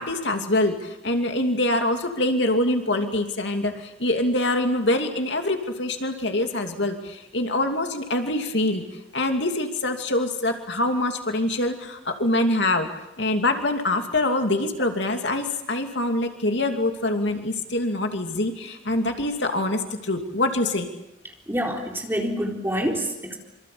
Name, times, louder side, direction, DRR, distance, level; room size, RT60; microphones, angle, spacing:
voice 1, 0.0-8.8 9.1-12.9 13.2-20.9, left 1 dB, 65° left, 5 dB, 2.8 m, -24 dB
voice 2, 21.5-23.4, equal, 10° right, 1 dB, 4.0 m, -27 dB
26.5 x 25.0 x 8.6 m, 0.85 s
head